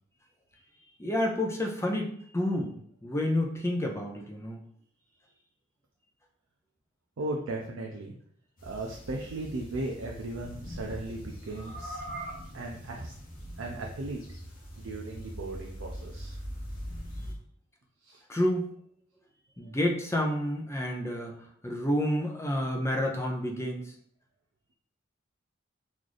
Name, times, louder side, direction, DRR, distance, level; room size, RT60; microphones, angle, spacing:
voice 1, 1.0-2.7 3.0-4.6 18.3-18.7 19.6-21.3 21.6-23.9, left 1 dB, 15° left, 1 dB, 0.5 m, -29 dB
voice 2, 7.2-8.1 8.6-11.2 11.5-12.0 12.5-13.1 13.6-14.2 14.8-16.4 18.0-18.2, right 2 dB, 85° right, -1 dB, 0.5 m, -36 dB
sound 1, 8.6-17.3, equal, 45° left, 0.9 m, -41 dB
3.1 x 2.4 x 3.9 m, 0.62 s
head